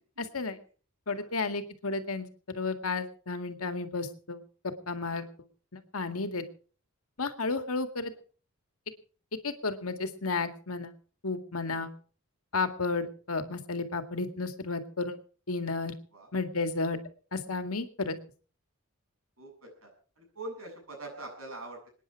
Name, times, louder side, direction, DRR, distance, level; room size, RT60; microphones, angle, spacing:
voice 1, 0.2-0.6 1.1-5.2 5.7-6.4 7.2-8.1 9.4-10.9 11.2-11.9 12.5-15.2 15.5-15.9 16.3-17.0 17.3-18.2, left 3 dB, 80° left, 8 dB, 2.0 m, -32 dB
voice 2, 1.1-1.4 5.0-5.2 11.6-11.9 16.1-16.3 19.4-19.9 20.2-21.9, right 2 dB, 70° right, 3 dB, 7.8 m, -44 dB
26.5 x 10.0 x 4.7 m, 0.42 s
head